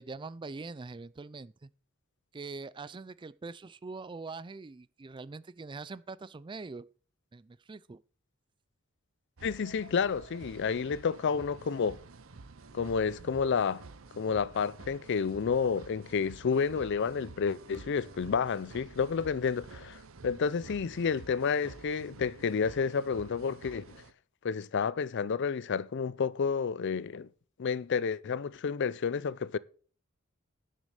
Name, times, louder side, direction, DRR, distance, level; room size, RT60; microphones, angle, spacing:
voice 1, 0.0-1.7 2.3-6.9 7.3-8.0, right 3 dB, 25° right, 0.4 m, -43 dB
voice 2, 9.4-12.0 12.7-13.8 14.2-23.8 24.4-27.3 27.6-29.6, left 6 dB, 60° left, 0.4 m, -30 dB
sound 1, 9.4-24.1, right 3 dB, 75° right, 0.8 m, -50 dB
10.5 x 6.4 x 6.4 m
head